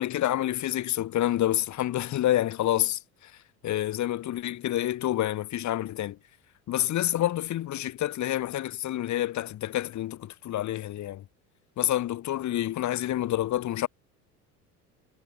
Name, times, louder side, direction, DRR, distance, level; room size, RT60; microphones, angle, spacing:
voice 1, 0.0-3.3 3.6-6.2 6.7-11.2 11.8-13.9, left 13 dB, 40° left, 2.0 m, -28 dB
figure-of-eight pair, 65°, 46 cm